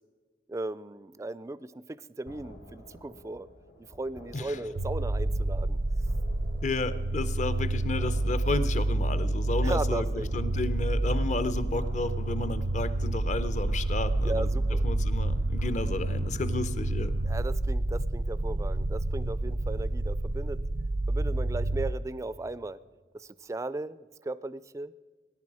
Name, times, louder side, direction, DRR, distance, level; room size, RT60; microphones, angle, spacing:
voice 1, 0.5-3.5 3.9-5.8 9.6-10.3 14.2-14.8 17.2-20.6 21.1-22.8 23.1-24.9, right 2 dB, 15° right, 17 dB, 0.3 m, -36 dB
sound 1, 2.3-17.5, equal, 85° left, 2.1 m, -51 dB
sound 2, 4.8-21.9, right 2 dB, 85° right, 0.7 m, -29 dB
voice 2, 6.6-14.5 14.8-17.1, left 2 dB, 45° left, 14 dB, 0.6 m, -32 dB
18.0 x 10.5 x 4.8 m, 1.4 s
head